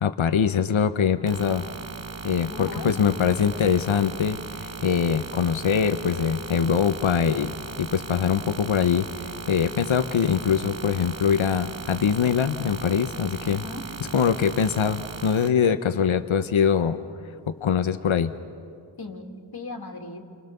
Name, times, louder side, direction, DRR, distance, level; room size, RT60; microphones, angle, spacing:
voice 1, 0.0-1.6 2.2-7.5 7.8-13.6 14.1-17.0 17.5-18.3, left 7 dB, 80° left, 9 dB, 0.8 m, -23 dB
sound 1, 1.3-15.5, right 4 dB, 35° right, 0.9 m, -38 dB
voice 2, 2.5-3.3 13.4-13.9 19.0-20.2, left 3 dB, 50° left, 3 dB, 2.4 m, -37 dB
29.5 x 24.0 x 6.7 m, 2.5 s
wide cardioid pair, 50°, 47 cm